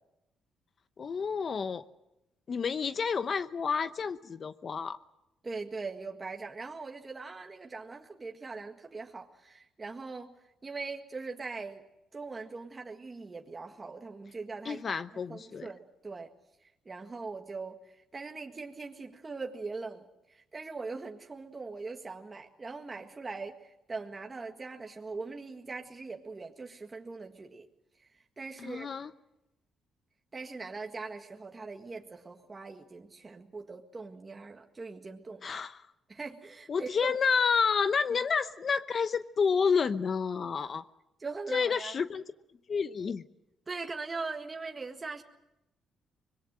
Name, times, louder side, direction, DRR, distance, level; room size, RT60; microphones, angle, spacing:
voice 1, 1.0-1.8 2.5-5.0 14.6-15.7 28.6-29.1 35.4-35.8 36.7-40.8 41.5-42.2 42.7-43.2, left 6 dB, 45° left, 12 dB, 0.9 m, -29 dB
voice 2, 5.4-10.3 10.6-11.8 12.1-14.8 15.3-16.3 16.6-27.7 28.0-28.1 28.4-28.9 30.3-35.4 36.1-37.1 41.2-41.9 43.7-45.2, right 4 dB, 25° right, 3 dB, 1.8 m, -41 dB
25.0 x 21.5 x 7.7 m, 0.89 s
cardioid pair, 90°, 0 cm